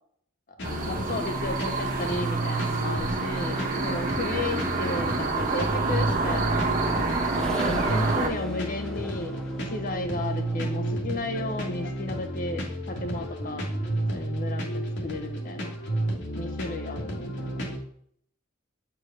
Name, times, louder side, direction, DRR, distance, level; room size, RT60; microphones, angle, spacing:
sound 1, 0.6-17.8, right 1 dB, 60° left, 1.6 m, -31 dB
sound 2, 0.6-8.3, right 3 dB, 40° right, 1.2 m, -28 dB
voice 1, 0.8-6.7 7.5-13.7 14.0-15.7 16.3-17.6, left 2 dB, 40° left, 6 dB, 0.8 m, -34 dB
Accelerating revving vroom, 6.1-12.5, right 2 dB, 5° left, 0.8 m, -40 dB
8.5 x 4.6 x 3.4 m, 0.64 s
head